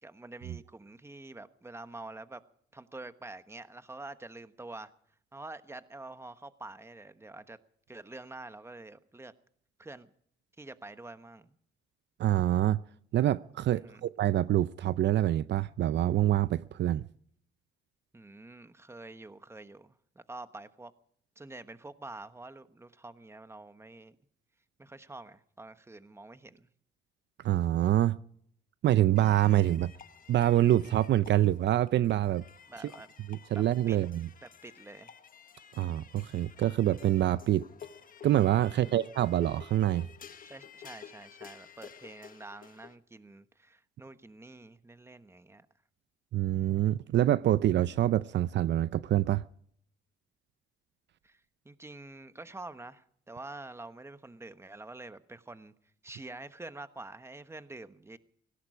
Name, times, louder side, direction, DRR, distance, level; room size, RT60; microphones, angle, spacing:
voice 1, 0.0-2.4 2.7-4.9 5.3-7.6 7.9-9.3 9.8-10.1 10.6-11.6 13.7-14.0 18.1-20.9 21.4-24.2 24.8-26.7 32.7-33.1 33.5-34.0 34.4-35.1 38.8-39.0 40.4-45.7 51.2-51.4 51.6-55.7 56.0-58.2, right 2 dB, 15° right, 1.1 m, -47 dB
voice 2, 12.2-12.8 13.1-17.0 27.4-28.2 28.8-29.9 30.3-32.4 33.3-34.3 35.8-37.6 38.2-40.1 46.3-49.4, right 13 dB, 65° right, 0.5 m, -26 dB
sound 1, 29.2-43.0, left 7 dB, 45° left, 1.2 m, -52 dB
17.5 x 16.5 x 5.0 m
cardioid pair, 90°, 20 cm